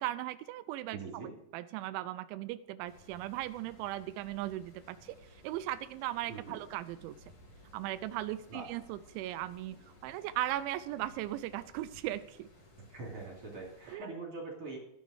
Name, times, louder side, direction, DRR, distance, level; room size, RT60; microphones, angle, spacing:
voice 1, 0.0-1.2 1.5-5.2 5.4-7.2 7.7-9.8 10.0-12.5 13.9-14.1, right 14 dB, 90° right, 11 dB, 2.6 m, -37 dB
voice 2, 0.9-1.3 6.3-6.6 8.5-8.6 12.8-14.8, right 3 dB, 35° right, -2 dB, 2.9 m, -43 dB
sound 1, 2.8-13.9, left 1 dB, 45° left, 2.0 m, -58 dB
13.0 x 7.0 x 6.4 m, 0.82 s
omnidirectional pair, 5.9 m